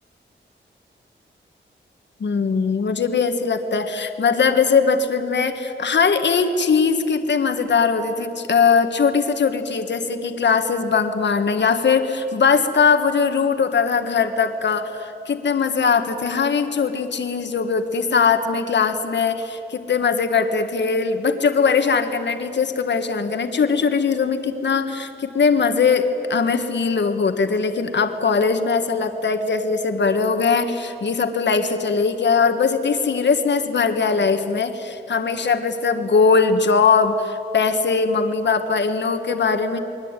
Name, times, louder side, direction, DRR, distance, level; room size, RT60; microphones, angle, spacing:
voice 1, 2.2-39.8, left 5 dB, 65° left, 7 dB, 1.7 m, -20 dB
29.0 x 22.5 x 9.1 m, 2.8 s
wide cardioid pair, 180°, 20 cm